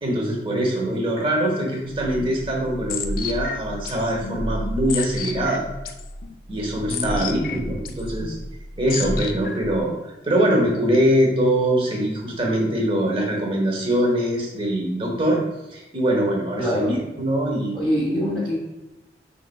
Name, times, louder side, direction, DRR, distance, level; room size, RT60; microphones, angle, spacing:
voice 1, 0.0-5.6 6.5-8.4 8.7-15.4 15.7-17.7, right 1 dB, 30° right, -1 dB, 1.0 m, -23 dB
sound 1, 1.9-9.8, left 2 dB, 50° left, 0.4 m, -31 dB
voice 2, 6.9-7.7 16.6-16.9 17.7-18.5, equal, 10° left, -7 dB, 0.9 m, -25 dB
5.3 x 3.7 x 2.2 m, 1.0 s
head